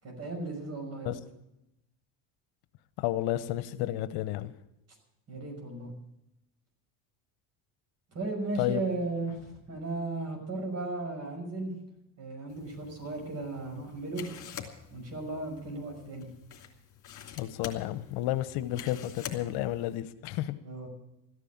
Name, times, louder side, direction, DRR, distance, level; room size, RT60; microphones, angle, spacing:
voice 1, 0.0-1.1 5.3-5.9 8.1-9.4 9.7-11.7 12.2-14.2 14.9-16.3 20.6-20.9, right 2 dB, 40° right, 3 dB, 6.0 m, -35 dB
voice 2, 3.0-4.5 8.6-8.8 17.4-20.6, left 14 dB, 75° left, 13 dB, 1.0 m, -31 dB
sound 1, 12.5-20.0, left 9 dB, 50° left, 2.9 m, -47 dB
14.5 x 9.9 x 8.6 m, 0.88 s
cardioid pair, 105°, 39 cm